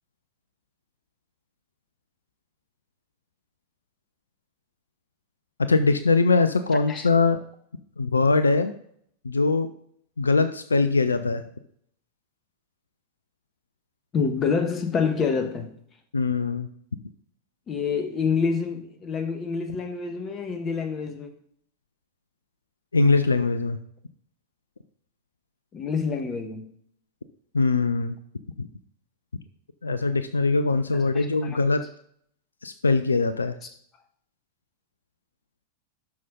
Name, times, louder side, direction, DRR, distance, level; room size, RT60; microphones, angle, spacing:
voice 1, 5.7-7.4 8.0-8.7 9.2-9.7 10.2-11.4 16.1-16.7 22.9-23.8 27.5-28.2 28.6-28.7 29.8-31.8 32.6-33.5, left 3 dB, 75° left, 0.5 m, -22 dB
voice 2, 14.1-15.7 17.7-21.3 25.7-26.7 31.1-31.6, left 5 dB, 25° left, 1.4 m, -27 dB
12.5 x 5.8 x 3.8 m
figure-of-eight pair, 90°, 0 cm